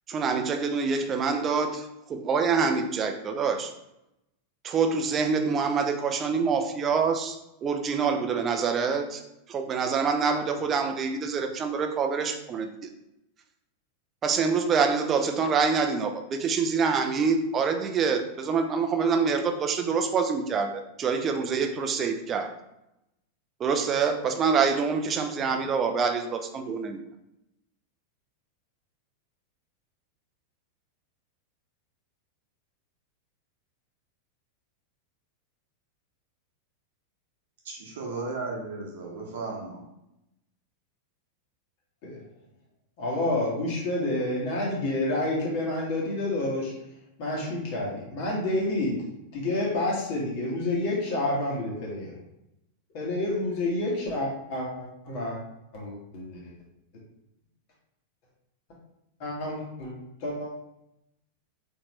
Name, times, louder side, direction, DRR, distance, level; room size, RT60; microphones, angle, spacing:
voice 1, 0.1-3.7 4.6-9.2 9.5-12.7 14.2-22.5 23.6-27.0, right 5 dB, 25° right, 6 dB, 0.5 m, -26 dB
voice 2, 37.6-39.8, right 3 dB, 60° right, -1 dB, 0.9 m, -35 dB
voice 3, 43.0-46.7 47.2-49.0 49.3-52.1 52.9-55.4 55.7-56.5 59.2-59.9 60.2-60.5, left 2 dB, 45° left, -3 dB, 1.6 m, -29 dB
4.2 x 3.8 x 3.0 m, 0.86 s
figure-of-eight pair, 90°, 0 cm